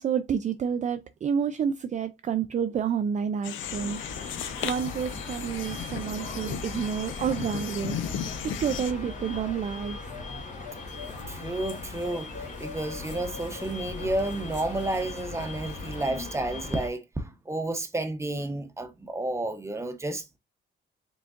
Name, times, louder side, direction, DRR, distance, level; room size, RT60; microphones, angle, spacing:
voice 1, 0.0-8.0 8.3-10.0, right 7 dB, 40° right, 0.4 m, -29 dB
sound 1, 3.4-8.9, left 9 dB, 75° left, 0.6 m, -36 dB
sound 2, 3.6-16.9, left 3 dB, 40° left, 1.6 m, -39 dB
sound 3, 4.1-16.0, left 4 dB, 60° left, 1.4 m, -46 dB
voice 2, 11.2-20.4, right 2 dB, 15° right, 0.9 m, -31 dB
5.0 x 3.9 x 2.5 m
cardioid pair, 90°, 20 cm